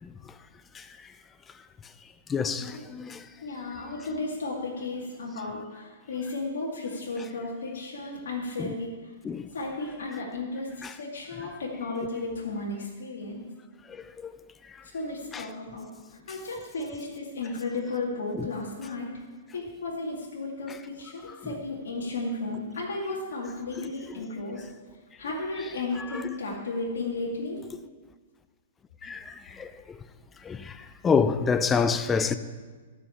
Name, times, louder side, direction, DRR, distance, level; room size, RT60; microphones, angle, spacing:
voice 1, 2.3-3.2 8.6-8.7 9.2-9.5 10.8-10.9 13.9-14.3 15.3-15.5 18.3-18.5 20.7-20.8 21.2-21.3 26.0-26.3 29.0-30.0 30.4-32.4, left 5 dB, 15° left, 0.6 m, -28 dB
voice 2, 3.4-9.1 9.5-13.4 14.9-15.9 16.3-19.1 19.5-24.7 25.2-27.6, left 3 dB, 75° left, 2.4 m, -34 dB
13.0 x 5.9 x 7.1 m
hypercardioid pair, 125°, 0 cm